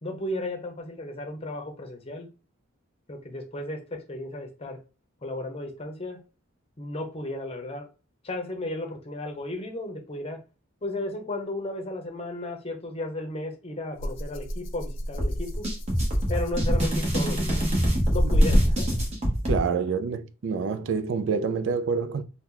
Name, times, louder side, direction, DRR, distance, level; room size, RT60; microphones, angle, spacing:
voice 1, 0.0-2.3 3.1-4.8 5.2-6.2 6.8-7.9 8.2-10.4 10.8-15.7 16.3-17.5 18.1-19.0, left 1 dB, 30° left, 0.7 m, -34 dB
Rattle (instrument), 14.0-19.3, equal, 65° left, 0.4 m, -27 dB
sound 1, 15.2-19.6, equal, 30° right, 1.0 m, -26 dB
voice 2, 19.5-22.2, right 5 dB, 60° right, 0.4 m, -27 dB
2.9 x 2.2 x 3.7 m
head